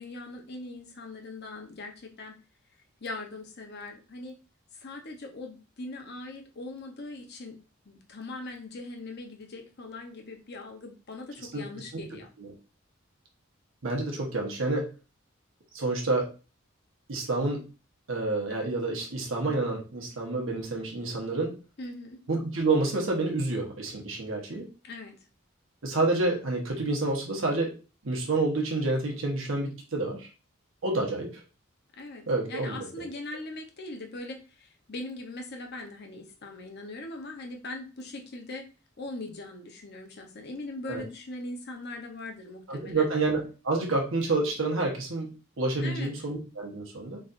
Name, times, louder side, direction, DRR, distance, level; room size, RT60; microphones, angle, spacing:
voice 1, 0.0-2.4 3.0-4.4 4.7-7.6 7.9-12.3 21.8-22.2 24.8-25.2 31.9-38.7 39.0-43.1 45.8-46.1, left 2 dB, 55° left, 4 dB, 0.8 m, -40 dB
voice 2, 13.8-14.9 15.7-16.3 17.1-17.6 18.1-21.6 22.3-24.7 25.8-27.8 28.0-30.3 30.8-31.4 32.3-33.1 40.9-41.0 42.7-45.3 45.6-47.2, right 2 dB, 75° right, 0 dB, 1.1 m, -28 dB
4.0 x 3.3 x 2.5 m, 0.33 s
head